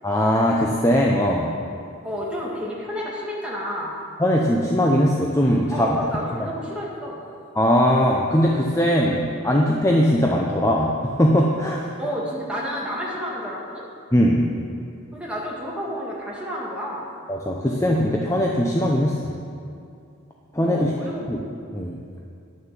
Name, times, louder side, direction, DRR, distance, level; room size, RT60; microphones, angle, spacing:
voice 1, 0.0-1.5 4.2-5.9 7.6-10.9 11.2-11.8 14.1-14.4 17.3-19.3 20.5-20.9 21.3-21.4 21.7-22.0, equal, 15° left, -1 dB, 0.6 m, -20 dB
voice 2, 2.0-3.9 5.7-7.2 12.0-13.9 15.1-17.0 20.7-21.4, equal, 5° right, -5 dB, 1.9 m, -30 dB
11.0 x 6.7 x 7.5 m, 2.5 s
head